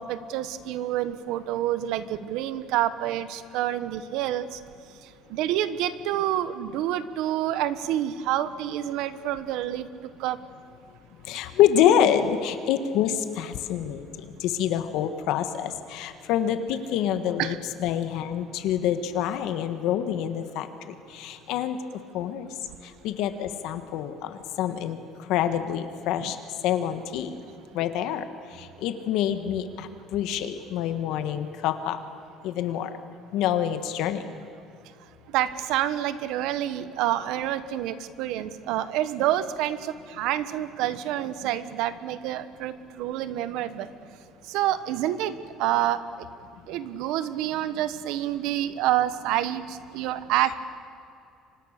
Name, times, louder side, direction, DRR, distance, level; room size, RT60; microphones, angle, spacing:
voice 1, 0.0-4.6 5.3-10.4 17.4-17.6 26.2-26.3 35.3-43.9 44.5-46.0 46.7-50.5, right 12 dB, 70° right, 13 dB, 1.3 m, -28 dB
voice 2, 11.3-14.0 14.4-20.7 21.1-21.8 22.1-22.5 23.0-25.0 25.3-26.4 26.6-27.3 27.7-28.3 28.6-32.0 32.4-32.9 33.3-34.2, left 10 dB, 65° left, 9 dB, 1.5 m, -26 dB
29.5 x 25.0 x 6.7 m, 2.7 s
cardioid pair, 175°, 0 cm